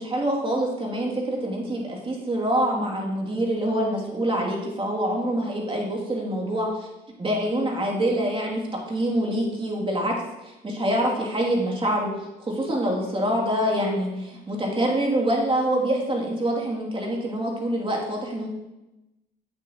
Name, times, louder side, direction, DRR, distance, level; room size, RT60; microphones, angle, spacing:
voice 1, 0.0-6.9 7.2-10.1 10.4-12.1 12.4-18.5, right 1 dB, 25° right, -1 dB, 2.3 m, -25 dB
8.2 x 7.3 x 2.8 m, 1.0 s
supercardioid pair, 75°, 21 cm